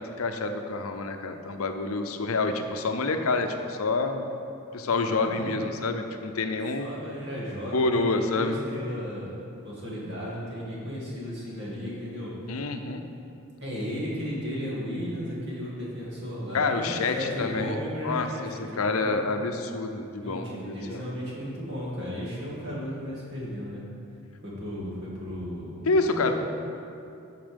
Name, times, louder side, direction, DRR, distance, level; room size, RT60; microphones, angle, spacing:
voice 1, 0.0-4.3 4.7-6.9 7.7-8.6 12.5-13.0 16.5-17.8 18.0-21.0 25.9-26.3, left 3 dB, 80° left, 7 dB, 0.6 m, -28 dB
voice 2, 5.1-5.6 6.8-9.3 9.6-12.3 13.6-19.2 20.2-23.8 24.4-25.9 26.1-26.3, equal, 50° right, -5 dB, 2.2 m, -35 dB
8.9 x 5.9 x 5.2 m, 2.6 s
head